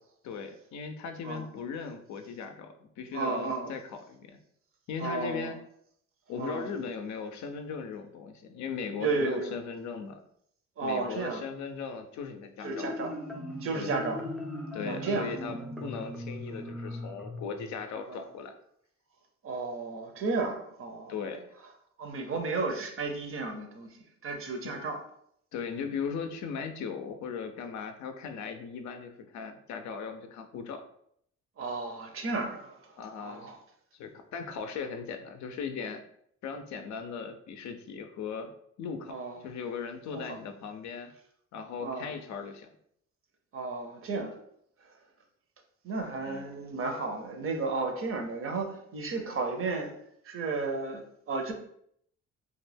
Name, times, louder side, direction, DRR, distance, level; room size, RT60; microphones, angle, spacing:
voice 1, 0.2-4.4 4.9-5.6 6.3-10.2 10.8-12.9 13.7-14.0 14.7-18.5 21.1-21.5 24.6-24.9 25.5-30.8 33.0-33.5 33.9-36.0 36.4-38.5 38.8-41.1 41.5-42.7 46.2-46.5, left 6 dB, 70° left, 6 dB, 0.4 m, -38 dB
voice 2, 3.1-3.7 5.0-5.5 6.4-6.7 9.0-9.5 10.8-11.4 12.6-13.1 13.6-14.2 14.9-15.3 18.1-18.2 19.4-21.1 22.0-24.0 24.2-25.0 31.6-33.6 39.1-39.4 40.1-40.4 41.8-42.1 43.5-44.4 44.8-44.9 45.8-49.9 50.2-51.5, right 3 dB, 45° right, 4 dB, 0.6 m, -33 dB
Marimba xylophone, 12.6-18.2, left 1 dB, ahead, 0.4 m, -39 dB
2.3 x 2.1 x 3.3 m, 0.70 s
cardioid pair, 90°, 30 cm